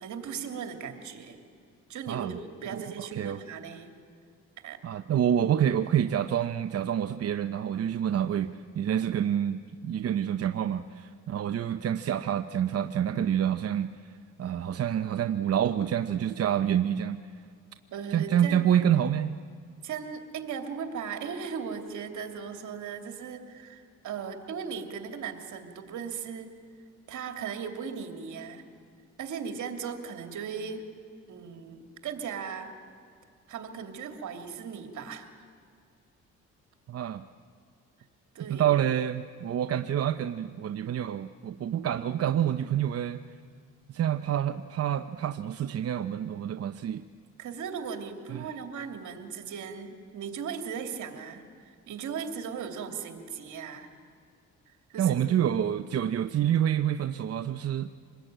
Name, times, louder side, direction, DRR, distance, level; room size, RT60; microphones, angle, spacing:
voice 1, 0.0-1.4 1.9-3.9 4.6-4.8 17.9-18.7 19.8-26.5 27.1-28.6 29.2-30.9 31.3-32.7 33.5-35.3 38.3-38.7 47.4-53.9 54.9-55.2, right 6 dB, 75° right, 5 dB, 2.8 m, -37 dB
voice 2, 2.7-3.4 4.8-17.2 18.1-19.3 36.9-37.2 38.5-43.2 43.9-47.0 48.3-48.5 55.0-57.9, right 10 dB, 50° right, 9 dB, 0.8 m, -27 dB
25.5 x 20.5 x 9.1 m, 2.2 s
cardioid pair, 90°, 30 cm